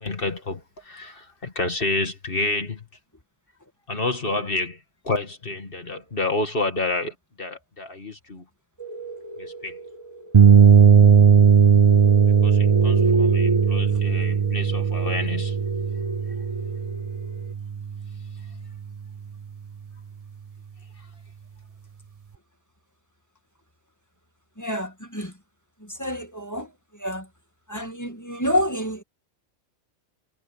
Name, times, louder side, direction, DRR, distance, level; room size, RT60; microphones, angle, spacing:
voice 1, 0.0-2.9 3.9-4.8 5.0-8.4 9.4-9.7 12.2-15.6, left 2 dB, 45° left, 2.4 m, -29 dB
sound 1, 8.8-17.5, right 1 dB, 20° right, 2.9 m, -32 dB
sound 2, 10.3-18.1, right 7 dB, 35° right, 0.7 m, -17 dB
voice 2, 24.6-25.3 25.8-26.7 27.0-27.3 27.7-29.0, left 1 dB, 15° left, 1.9 m, -28 dB
omnidirectional pair, 1.3 m